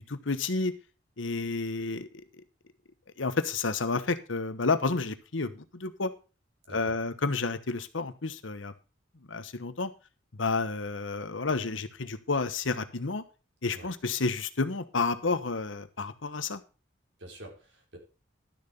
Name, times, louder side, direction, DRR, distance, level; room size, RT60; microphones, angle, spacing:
voice 1, 0.1-0.7 1.2-2.1 3.2-6.1 6.7-8.7 9.3-9.9 10.4-13.2 13.6-16.6, left 3 dB, 85° left, 12 dB, 1.1 m, -30 dB
voice 2, 17.2-18.0, right 1 dB, 65° right, 1 dB, 4.4 m, -46 dB
12.0 x 6.9 x 5.2 m, 0.33 s
head